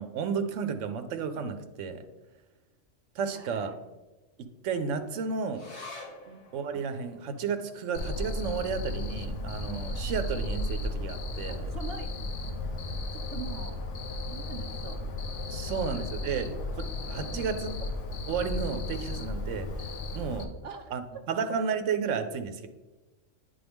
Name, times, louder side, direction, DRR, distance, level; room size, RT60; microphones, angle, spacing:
voice 1, 0.0-2.0 3.1-3.7 4.4-5.7 6.5-11.7 15.5-17.7 18.3-20.5 20.9-22.7, right 6 dB, 90° right, 8 dB, 1.0 m, -33 dB
voice 2, 3.3-3.8 6.3-6.4 11.5-12.1 13.1-13.8 14.3-15.0 15.6-16.5 17.3-17.7 20.6-21.0 21.4-21.5, right 5 dB, 65° right, 6 dB, 0.7 m, -44 dB
sound 1, 5.5-12.3 12.6-12.7 13.0-13.7 14.3-14.4, left 2 dB, 55° left, 1.7 m, -51 dB
Cricket, 7.9-20.4, left 2 dB, 90° left, 1.1 m, -34 dB
9.2 x 3.7 x 3.5 m, 1.1 s
omnidirectional pair, 1.2 m